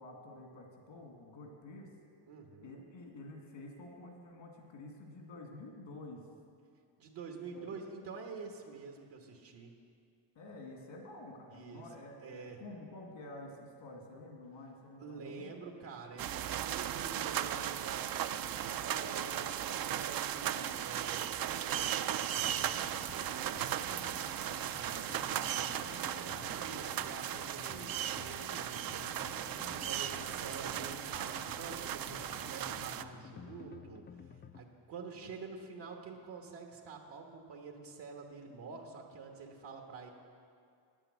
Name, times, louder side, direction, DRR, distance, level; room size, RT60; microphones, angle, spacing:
voice 1, 0.0-1.9 2.6-6.3 7.5-7.8 10.3-15.5, left 2 dB, 85° left, 1 dB, 2.3 m, -49 dB
voice 2, 2.3-2.8 7.0-9.7 11.5-11.8 12.2-12.6 15.0-23.7 24.7-29.1 29.5-40.1, right 4 dB, 75° right, 1 dB, 1.4 m, -48 dB
sound 1, 16.2-33.0, right 10 dB, 55° right, 0.5 m, -37 dB
sound 2, 22.4-34.6, left 8 dB, 25° left, 0.3 m, -53 dB
9.6 x 8.7 x 8.0 m, 2.3 s
cardioid pair, 100°, 44 cm